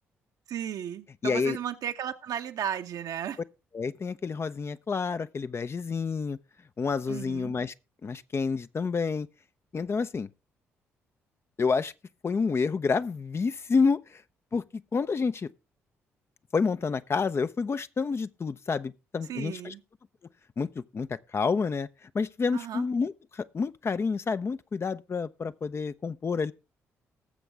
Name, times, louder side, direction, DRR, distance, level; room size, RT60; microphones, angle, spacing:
voice 1, 0.5-3.4 7.1-7.5 19.3-19.8 22.5-22.8, right 9 dB, 60° right, 1.0 m, -34 dB
voice 2, 1.2-1.6 3.7-6.4 6.8-7.7 8.0-9.3 9.7-10.3 11.6-11.9 12.2-14.0 14.5-14.6 14.9-15.5 16.5-19.7 20.6-20.7 20.9-21.9 22.1-26.5, left 5 dB, 35° left, 0.6 m, -28 dB
19.5 x 7.1 x 3.4 m
hypercardioid pair, 45°, 7 cm